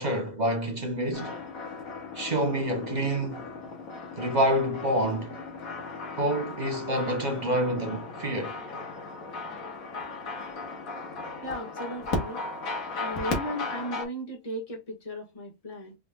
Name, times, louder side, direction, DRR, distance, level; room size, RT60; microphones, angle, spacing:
voice 1, 0.0-1.4 2.1-3.5 4.2-5.4 6.1-8.6, right 1 dB, 35° right, 0.8 m, -27 dB
sound 1, 1.1-14.1, left 3 dB, 55° left, 1.8 m, -36 dB
voice 2, 11.4-12.4 13.0-16.0, equal, 20° left, 1.6 m, -36 dB
4.8 x 3.6 x 2.3 m
omnidirectional pair, 1.9 m